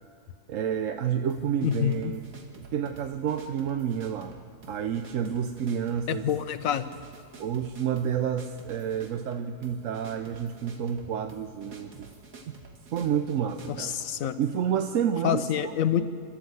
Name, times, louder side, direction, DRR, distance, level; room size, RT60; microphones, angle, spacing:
voice 1, 0.5-2.2 2.6-4.4 4.7-6.3 7.4-12.1 12.9-14.0 14.4-15.7 16.0-16.1, right 8 dB, 65° right, 7 dB, 1.0 m, -29 dB
sound 1, 1.3-14.6, right 3 dB, 90° right, 2.4 m, -49 dB
voice 2, 1.6-2.1 6.1-6.9 13.7-14.4 15.2-16.1, left 10 dB, 65° left, 12 dB, 1.2 m, -27 dB
26.5 x 13.0 x 7.8 m, 2.3 s
omnidirectional pair, 1.6 m